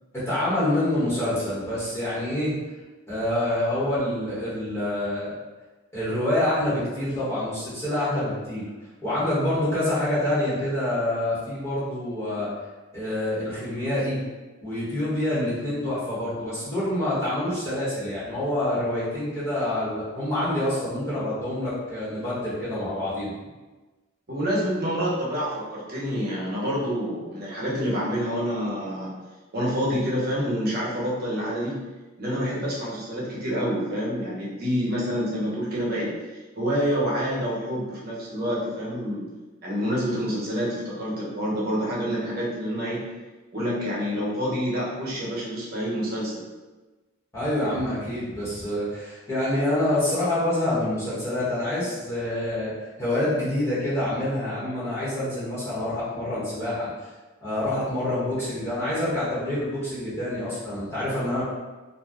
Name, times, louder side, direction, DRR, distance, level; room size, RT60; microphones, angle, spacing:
voice 1, 0.1-2.6 3.1-5.3 5.9-8.7 9.0-12.5 12.9-14.2 14.6-23.3 47.3-52.7 53.0-56.9 57.4-61.5, left 1 dB, 15° left, -11 dB, 1.1 m, -26 dB
voice 2, 24.3-29.1 29.5-31.8 32.2-36.2 36.6-39.3 39.6-43.0 43.5-46.4, equal, 50° right, -5 dB, 0.9 m, -27 dB
2.6 x 2.2 x 3.4 m, 1.2 s
head